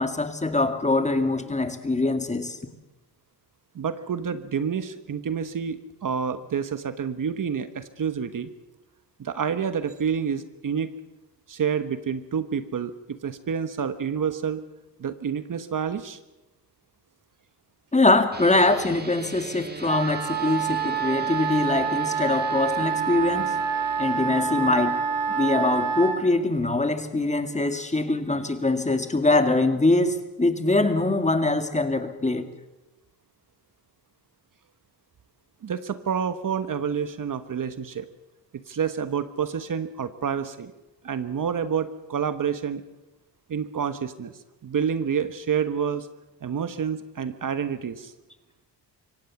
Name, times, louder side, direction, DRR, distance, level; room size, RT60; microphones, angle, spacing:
voice 1, 0.0-2.6 17.9-23.5 24.0-25.0 25.4-32.5, left 2 dB, 15° left, 8 dB, 2.0 m, -23 dB
voice 2, 3.7-8.5 9.2-10.9 11.5-14.6 15.0-16.2 35.6-38.1 38.5-40.7 41.0-42.8 43.5-44.3 44.6-46.1 46.4-48.1, right 7 dB, 45° right, 11 dB, 1.3 m, -28 dB
sound 1, 18.3-27.8, right 3 dB, 25° right, 2.1 m, -40 dB
Wind instrument woodwind instrument, 19.8-26.2, right 6 dB, 85° right, 4.2 m, -27 dB
24.5 x 17.5 x 7.2 m, 1.0 s
cardioid pair, 100°, 43 cm